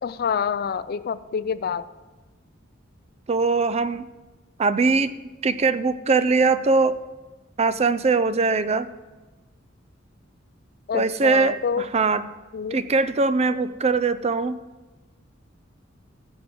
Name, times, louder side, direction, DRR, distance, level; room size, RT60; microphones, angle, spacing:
voice 1, 0.0-1.9 10.9-11.9 12.5-12.8, left 6 dB, 50° left, 15 dB, 0.4 m, -27 dB
voice 2, 3.3-4.1 4.6-5.1 5.4-7.0 7.6-8.9 10.9-12.2 12.7-14.6, right 4 dB, 30° right, 14 dB, 0.4 m, -21 dB
15.0 x 5.3 x 6.1 m, 1.2 s
head